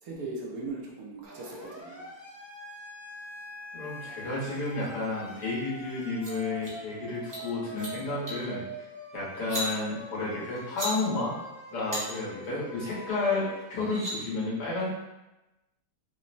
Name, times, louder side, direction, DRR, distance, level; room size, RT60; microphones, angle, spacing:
voice 1, 0.0-2.1, right 3 dB, 70° right, -3 dB, 1.0 m, -39 dB
Siren, 1.2-13.6, right 1 dB, 30° left, 0.5 m, -44 dB
voice 2, 3.7-8.6 9.1-11.4 11.7-14.9, left 3 dB, 90° left, -7 dB, 1.7 m, -31 dB
sound 1, 6.0-6.3 6.6-6.7 7.1-7.4 7.7-7.9 8.3-8.5 9.3-9.6 10.6-10.9 11.9-12.0 13.3-13.4 13.7-14.1, equal, 20° right, 0.5 m, -35 dB
3.7 x 2.0 x 2.5 m, 1.0 s
omnidirectional pair, 1.7 m